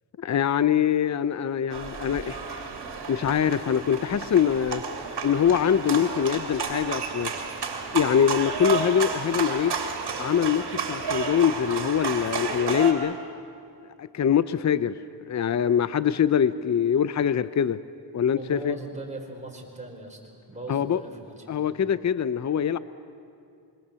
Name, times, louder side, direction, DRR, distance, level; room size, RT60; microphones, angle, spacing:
voice 1, 0.2-2.6 3.1-4.8 5.2-7.3 7.9-9.7 10.2-13.2 14.0-14.9 15.3-17.8 18.1-18.8 20.7-21.0 21.5-22.8, left 8 dB, 40° left, 15 dB, 0.7 m, -23 dB
sound 1, 1.7-12.9, right 5 dB, 70° right, 2.9 m, -31 dB
voice 2, 18.4-21.8, right 2 dB, 15° right, 0 dB, 5.0 m, -40 dB
26.0 x 23.0 x 7.0 m, 2.4 s
cardioid pair, 80°, 41 cm